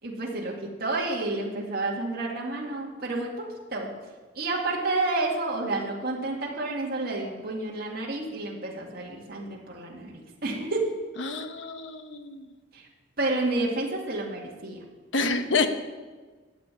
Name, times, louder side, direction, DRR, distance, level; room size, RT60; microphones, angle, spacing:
voice 1, 0.0-3.9 4.3-10.9 12.7-12.9 13.2-14.8, right 2 dB, 50° right, -3 dB, 2.2 m, -30 dB
voice 2, 11.2-12.5 15.1-15.7, left 3 dB, 75° left, 8 dB, 1.1 m, -28 dB
13.0 x 7.7 x 9.8 m, 1.4 s
head